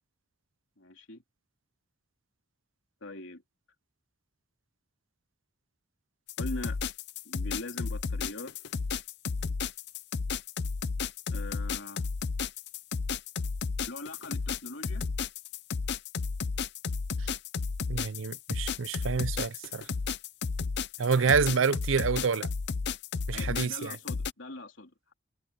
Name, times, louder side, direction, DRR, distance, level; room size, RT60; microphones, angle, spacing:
voice 1, 0.8-1.2 3.0-3.4 6.4-6.8 7.3-8.6 11.3-12.1 13.9-15.0 21.1-21.6 23.3-25.1, left 2 dB, 75° left, 3.5 m, -42 dB
sound 1, 6.3-24.3, left 5 dB, 60° left, 0.6 m, -33 dB
voice 2, 17.9-19.9 21.0-22.5 23.3-24.0, right 5 dB, 85° right, 0.6 m, -28 dB
head